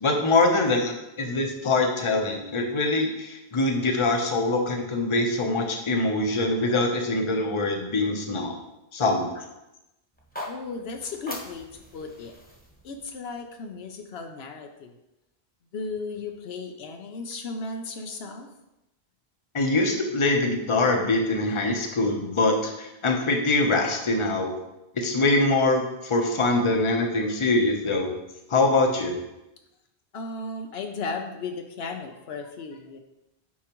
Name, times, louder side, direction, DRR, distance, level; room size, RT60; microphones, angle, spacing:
voice 1, 0.0-8.5 8.9-9.4 19.5-24.5 25.0-28.1 28.5-29.1, left 2 dB, 30° left, 3 dB, 0.8 m, -23 dB
sound 1, 10.1-14.3, left 1 dB, 10° left, 1.1 m, -42 dB
voice 2, 10.5-12.4 12.8-14.9 15.7-18.5 30.1-33.0, left 3 dB, 75° left, 5 dB, 0.9 m, -35 dB
8.5 x 4.7 x 3.0 m, 0.92 s
omnidirectional pair, 1.1 m